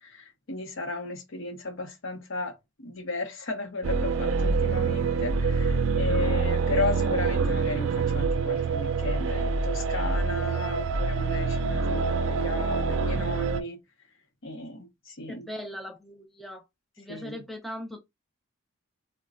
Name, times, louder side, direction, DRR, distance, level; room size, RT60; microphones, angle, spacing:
voice 1, 0.0-13.8 14.4-15.5 17.1-17.4, left 2 dB, 70° left, 0.8 m, -34 dB
sound 1, 3.8-13.6, right 4 dB, 70° right, 0.4 m, -26 dB
voice 2, 15.3-16.6 17.0-18.0, equal, ahead, 0.4 m, -39 dB
4.0 x 2.2 x 2.4 m
head